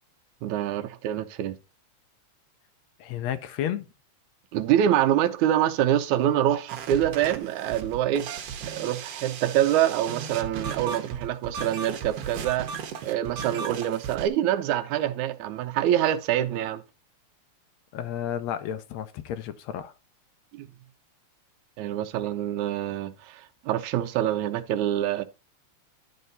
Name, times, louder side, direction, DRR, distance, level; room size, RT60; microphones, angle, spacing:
voice 1, 0.4-1.6 4.5-12.7 13.0-16.8 20.5-20.7 21.8-25.2, right 11 dB, 85° right, 2.1 m, -25 dB
voice 2, 3.0-3.9 17.9-19.9, left 10 dB, 75° left, 1.8 m, -32 dB
sound 1, 6.7-14.3, right 7 dB, 65° right, 1.9 m, -36 dB
11.0 x 4.5 x 4.0 m
omnidirectional pair, 3.3 m